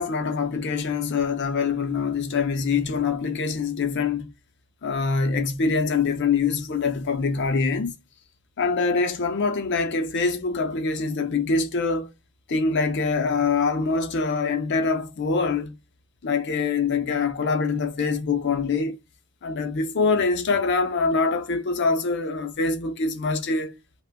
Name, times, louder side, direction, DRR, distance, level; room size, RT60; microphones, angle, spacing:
voice 1, 0.0-4.3 4.8-7.9 8.6-12.1 12.5-15.7 16.2-19.0 19.4-23.7, left 4 dB, 55° left, 0.5 m, -24 dB
2.4 x 2.1 x 3.5 m
head